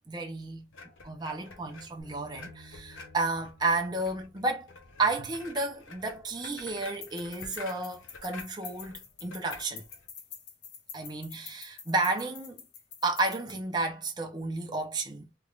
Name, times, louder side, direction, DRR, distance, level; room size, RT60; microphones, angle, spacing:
voice 1, 0.1-0.7 1.0-4.7 5.0-9.8 10.9-12.6 13.0-15.3, right 3 dB, 20° right, 0.6 m, -32 dB
sound 1, 0.7-10.1, left 3 dB, 90° left, 0.8 m, -49 dB
Bass guitar, 2.0-8.2, equal, 5° right, 1.3 m, -57 dB
sound 2, 6.8-13.5, left 7 dB, 55° left, 0.8 m, -47 dB
3.5 x 3.1 x 2.4 m
head